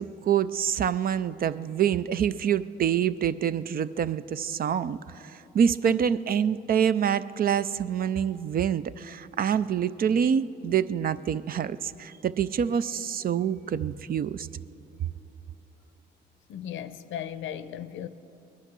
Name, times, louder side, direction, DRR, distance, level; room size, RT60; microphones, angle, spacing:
voice 1, 0.0-14.5, right 8 dB, 50° right, 0.4 m, -26 dB
voice 2, 16.5-18.1, left 10 dB, 75° left, 0.7 m, -36 dB
20.5 x 11.0 x 6.1 m
cardioid pair, 90°, 20 cm